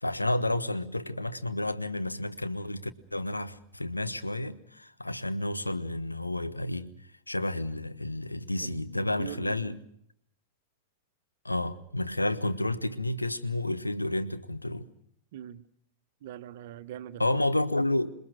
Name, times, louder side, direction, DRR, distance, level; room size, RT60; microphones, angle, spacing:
voice 1, 0.0-6.9 7.3-9.8 11.4-14.9 17.2-18.1, left 1 dB, 85° left, 1.2 m, -30 dB
voice 2, 8.6-9.8 15.3-15.7 16.2-17.4, right 11 dB, 55° right, 1.0 m, -42 dB
27.5 x 20.5 x 6.4 m
figure-of-eight pair, 90°, 0 cm